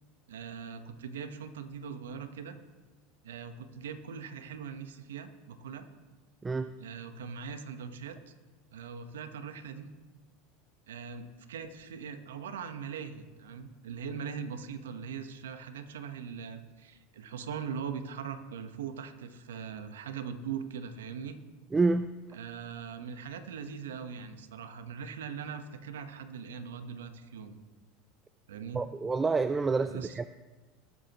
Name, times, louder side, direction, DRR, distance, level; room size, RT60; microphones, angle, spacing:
voice 1, 0.3-2.5 3.2-5.9 6.8-8.3 8.7-9.9 10.9-21.4 22.3-27.6 28.5-28.8 29.9-30.2, right 6 dB, 85° right, 8 dB, 1.1 m, -41 dB
voice 2, 21.7-22.1 28.7-30.2, right 3 dB, 20° right, 11 dB, 0.4 m, -28 dB
19.5 x 8.4 x 3.0 m, 1.3 s
hypercardioid pair, 100°, 0 cm